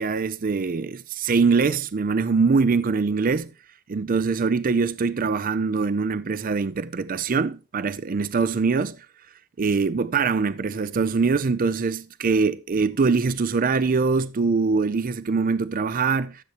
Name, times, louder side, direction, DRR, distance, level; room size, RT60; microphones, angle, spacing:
voice 1, 0.0-3.5 3.9-9.1 9.6-16.4, right 4 dB, 40° right, 0.4 m, -23 dB
13.0 x 7.9 x 3.0 m
head